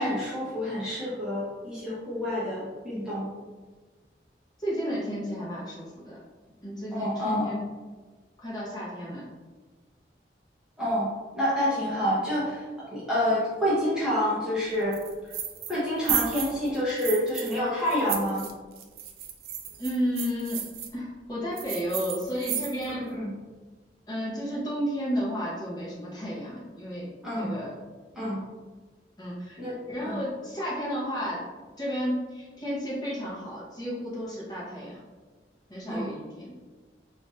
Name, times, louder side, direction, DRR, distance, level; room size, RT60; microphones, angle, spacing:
voice 1, 0.0-3.3 6.9-7.4 10.8-11.1 11.3-12.7 12.9-15.0 15.7-18.4 23.1-23.3 27.2-27.6 28.1-28.4 29.6-29.8 30.0-30.2 35.9-36.1, equal, 5° right, -10 dB, 0.8 m, -28 dB
voice 2, 4.6-6.2 6.6-7.6 8.4-9.3 19.8-23.1 24.1-27.1 27.3-27.7 29.2-29.6 29.9-31.4 31.8-35.0 35.7-36.5, equal, 20° left, -7 dB, 1.0 m, -32 dB
sound 1, 14.9-15.8 16.1-17.6 17.9-20.9 21.6-23.0, right 9 dB, 55° right, 0.4 m, -33 dB
4.6 x 2.6 x 2.4 m, 1.3 s
head